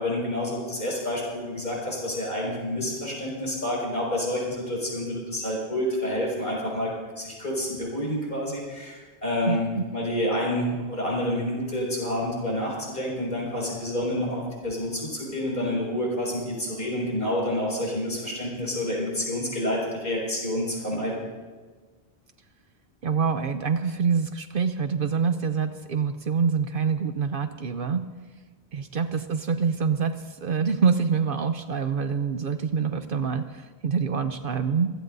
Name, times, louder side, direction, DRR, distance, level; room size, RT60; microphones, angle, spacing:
voice 1, 0.0-21.2, left 1 dB, 50° left, -3 dB, 5.9 m, -28 dB
voice 2, 9.5-9.8 23.0-28.0 28.7-34.9, right 6 dB, 60° right, 9 dB, 0.8 m, -26 dB
26.5 x 16.0 x 2.7 m, 1.4 s
omnidirectional pair, 1.1 m